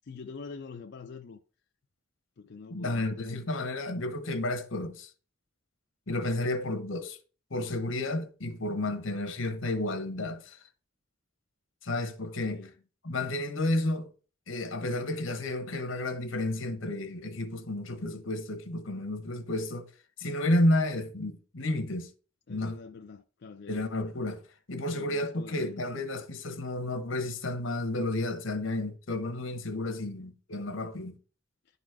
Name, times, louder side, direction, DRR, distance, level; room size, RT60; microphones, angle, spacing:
voice 1, 0.0-1.4 2.4-3.2 12.5-12.7 22.5-23.8 24.9-25.8 29.6-30.2, left 4 dB, 55° left, 0.5 m, -45 dB
voice 2, 2.7-5.1 6.1-7.2 7.5-10.6 11.8-12.7 13.0-14.1 14.5-19.9 20.2-22.1 22.5-22.8 23.7-24.4 24.7-31.2, left 1 dB, 80° left, 1.1 m, -31 dB
11.0 x 4.1 x 4.7 m
head